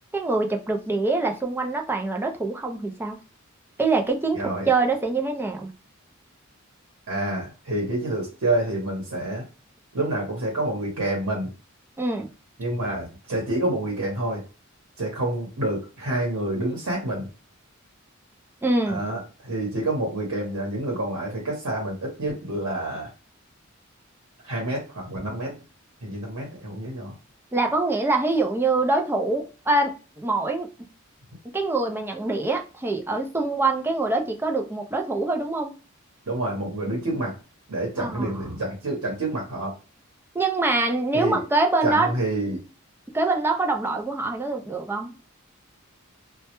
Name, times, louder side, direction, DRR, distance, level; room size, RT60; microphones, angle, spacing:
voice 1, 0.1-3.2 3.8-5.7 12.0-12.3 18.6-19.0 27.5-30.7 31.5-35.7 38.0-38.4 40.3-42.1 43.1-45.1, right 3 dB, 10° right, 0.4 m, -24 dB
voice 2, 4.3-4.7 7.1-9.4 9.9-11.5 12.6-14.4 15.0-17.3 18.9-23.1 24.4-25.6 26.0-27.1 36.3-37.3 37.7-39.7 41.1-41.4 41.8-42.6, right 1 dB, 90° right, 0.9 m, -28 dB
2.2 x 2.0 x 2.9 m
head